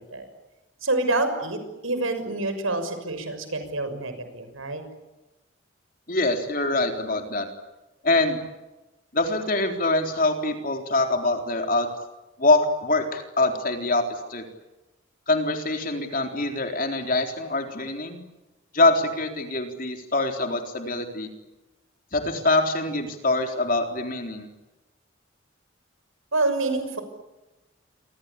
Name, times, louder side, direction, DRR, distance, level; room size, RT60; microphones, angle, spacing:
voice 1, 0.8-4.8 26.3-27.0, right 2 dB, 80° right, 8 dB, 6.4 m, -27 dB
voice 2, 6.1-7.5 8.0-8.4 9.1-11.9 12.4-14.4 15.3-18.2 18.7-21.3 22.1-24.5, left 2 dB, 40° left, 4 dB, 3.9 m, -24 dB
28.5 x 25.0 x 8.4 m, 1.1 s
head